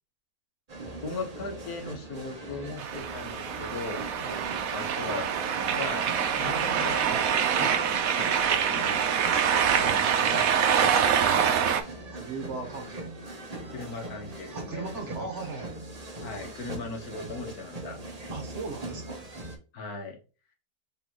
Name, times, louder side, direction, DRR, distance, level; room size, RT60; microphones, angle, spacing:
sound 1, 0.7-19.6, right 2 dB, 30° right, 1.1 m, -41 dB
voice 1, 1.0-4.2 4.7-5.3 5.7-6.1 6.4-9.4 9.7-11.9 13.7-15.3 16.2-18.0 19.7-20.2, left 3 dB, 80° left, 3 dB, 1.9 m, -39 dB
sound 2, 2.8-11.8, right 8 dB, 70° right, 1.1 m, -25 dB
voice 2, 12.1-13.1 14.5-15.7 18.3-19.2, right 4 dB, 55° right, 4 dB, 1.4 m, -38 dB
4.1 x 3.9 x 2.9 m, 0.34 s
omnidirectional pair, 1.6 m